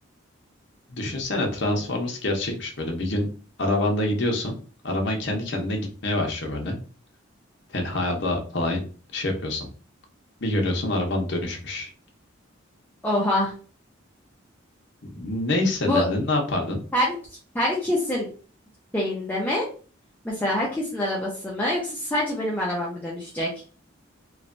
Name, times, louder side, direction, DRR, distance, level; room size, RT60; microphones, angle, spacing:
voice 1, 0.9-3.3 3.6-4.6 4.8-6.8 7.7-8.8 9.1-9.7 10.4-11.9 15.1-16.8, left 1 dB, 60° left, 2 dB, 0.8 m, -26 dB
voice 2, 13.0-13.5 15.9-16.1 16.9-17.1 17.5-18.3 18.9-19.7 20.2-23.5, left 1 dB, 10° left, -5 dB, 0.5 m, -25 dB
3.1 x 2.2 x 2.5 m, 0.38 s
head